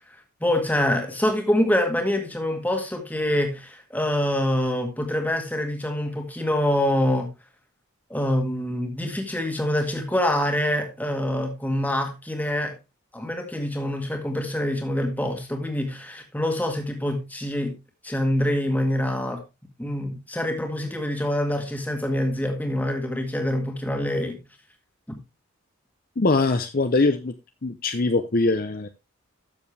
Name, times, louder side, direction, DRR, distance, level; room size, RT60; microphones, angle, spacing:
voice 1, 0.4-7.3 8.1-12.7 13.1-17.7 18.0-19.4 19.8-24.4, left 1 dB, 10° left, 3 dB, 1.8 m, -25 dB
voice 2, 26.2-27.3 27.6-28.9, left 3 dB, 40° left, 8 dB, 0.6 m, -22 dB
12.5 x 7.0 x 3.3 m, 0.26 s
head